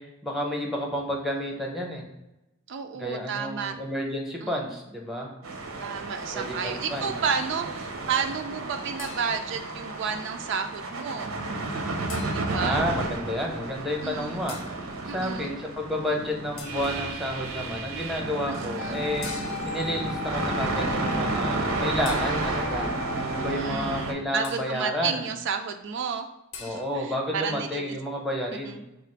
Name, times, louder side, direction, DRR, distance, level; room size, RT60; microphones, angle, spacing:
voice 1, 0.0-2.0 2.9-5.3 6.3-7.1 12.5-14.6 15.0-22.9 23.2-25.2 26.6-28.8, equal, ahead, -1 dB, 0.7 m, -31 dB
voice 2, 2.7-3.8 4.4-4.5 5.8-11.3 12.3-12.8 14.0-14.4 15.1-15.5 18.5-19.0 23.2-26.3 26.6-28.0 28.6-28.8, right 6 dB, 60° right, 5 dB, 0.3 m, -32 dB
sound 1, 5.4-24.1, right 3 dB, 85° right, 0.7 m, -32 dB
sound 2, 9.0-9.7 12.1-12.7 14.5-14.9 16.6-17.1 19.2-19.9 22.0-22.8 24.4-24.9 26.5-26.8, left 5 dB, 80° left, 0.7 m, -43 dB
Wind instrument woodwind instrument, 18.8-23.7, left 7 dB, 40° left, 0.5 m, -37 dB
4.1 x 2.4 x 4.4 m, 0.96 s
head